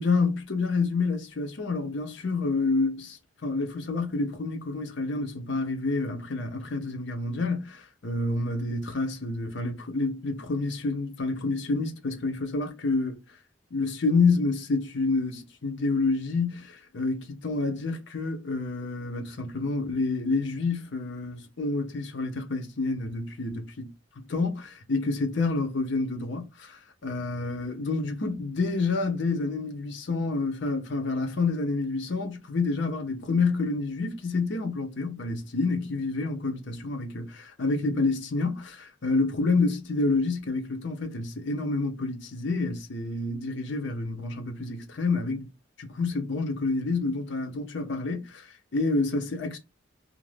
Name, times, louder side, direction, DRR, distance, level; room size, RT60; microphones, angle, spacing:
voice 1, 0.0-13.2 13.7-23.9 24.3-45.5 45.8-49.6, left 3 dB, 60° left, 0.6 m, -28 dB
2.5 x 2.0 x 3.1 m
head